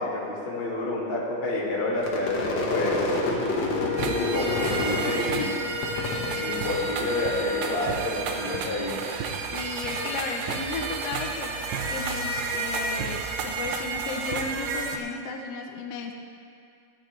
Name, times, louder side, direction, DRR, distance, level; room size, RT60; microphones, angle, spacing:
voice 1, 0.0-3.1 3.9-5.5 6.4-9.0, left 2 dB, 30° left, -5 dB, 1.2 m, -29 dB
Crowd / Fireworks, 2.0-7.4 7.7-8.3 8.6-12.1, left 2 dB, 65° left, 1.1 m, -30 dB
Wind instrument woodwind instrument, 3.1-8.8, left 4 dB, 45° left, 2.2 m, -35 dB
sound 1, 4.0-15.0, right 4 dB, 80° right, 2.4 m, -31 dB
voice 2, 5.0-5.5 9.5-11.6 11.9-16.1, left 5 dB, 85° left, 3 dB, 1.3 m, -35 dB
16.5 x 10.5 x 3.3 m, 2.4 s
omnidirectional pair, 3.8 m